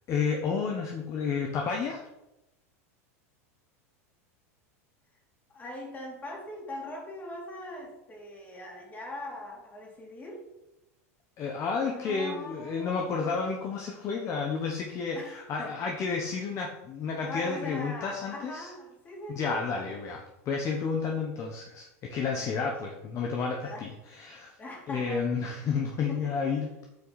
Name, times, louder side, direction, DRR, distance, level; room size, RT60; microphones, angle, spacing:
voice 1, 0.1-2.0 11.4-18.7 19.3-24.5 24.9-26.8, left 5 dB, 40° left, 1 dB, 1.1 m, -31 dB
voice 2, 5.5-10.5 11.8-13.4 15.0-15.8 17.1-20.1 22.1-22.5 23.6-23.9 24.6-25.2 26.1-26.4, left 1 dB, 20° left, -1 dB, 2.8 m, -41 dB
8.0 x 5.9 x 4.2 m, 0.93 s
supercardioid pair, 115°, 8 cm